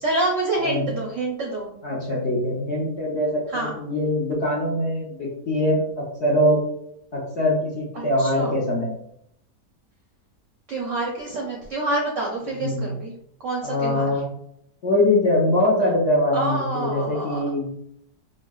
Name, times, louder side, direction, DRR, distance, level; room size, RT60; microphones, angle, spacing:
voice 1, 0.0-1.7 3.5-3.8 7.9-8.5 10.7-13.1 13.4-14.1 16.3-17.4, right 2 dB, 65° right, -2 dB, 0.8 m, -27 dB
voice 2, 1.8-6.6 7.1-8.9 12.6-13.0 13.6-14.2 14.8-17.7, left 1 dB, 55° left, -4 dB, 0.8 m, -23 dB
4.7 x 2.1 x 2.3 m, 0.74 s
omnidirectional pair, 1.8 m